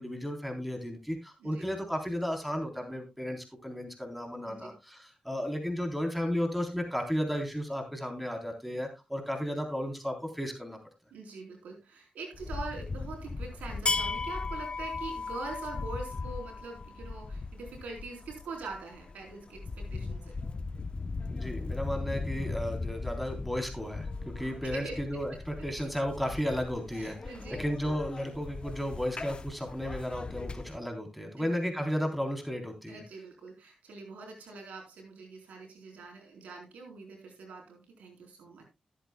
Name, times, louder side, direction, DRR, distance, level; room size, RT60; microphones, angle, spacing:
voice 1, 0.0-10.8 21.3-24.1 24.4-27.2 27.6-33.0, equal, ahead, 3 dB, 3.6 m, -34 dB
voice 2, 4.4-4.7 11.1-20.4 24.3-25.7 26.9-27.9 31.4-31.5 32.9-38.7, right 3 dB, 85° right, 1 dB, 3.9 m, -44 dB
sound 1, 12.3-30.8, left 3 dB, 45° left, 0.8 m, -37 dB
18.5 x 8.5 x 2.2 m, 0.24 s
cardioid pair, 45°, 2 cm